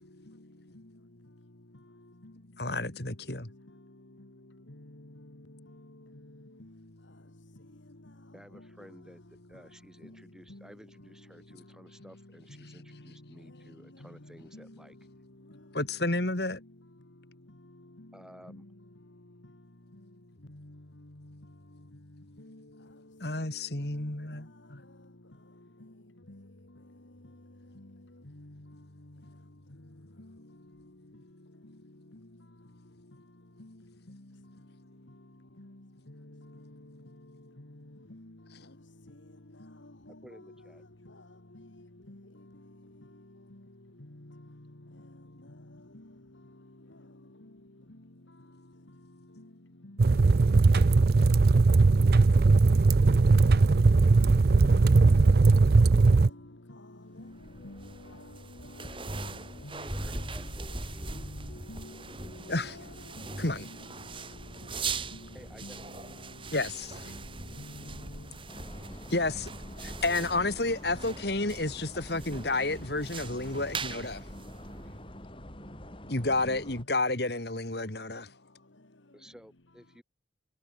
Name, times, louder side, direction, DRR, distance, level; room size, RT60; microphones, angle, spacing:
voice 1, 0.0-69.1 69.8-70.0 71.5-71.9 73.0-73.1 73.4-73.8 74.1-76.1 77.8-79.3, left 1 dB, 80° left, 2.2 m, -52 dB
voice 2, 2.6-3.5 15.7-16.6 23.2-24.8 62.5-62.8 63.4-63.7 66.5-66.7 69.1-69.5 69.8-74.2 76.1-78.3, left 2 dB, 55° left, 2.8 m, -30 dB
voice 3, 8.3-15.0 18.1-18.7 40.1-40.8 58.9-59.0 59.8-61.3 65.3-65.8 79.1-80.0, equal, 5° right, 7.4 m, -53 dB
sound 1, 50.0-56.3, right 3 dB, 55° right, 0.5 m, -20 dB
sound 2, 57.3-75.1, right 3 dB, 25° right, 4.6 m, -41 dB
sound 3, 68.5-76.8, left 1 dB, 25° left, 3.9 m, -46 dB
head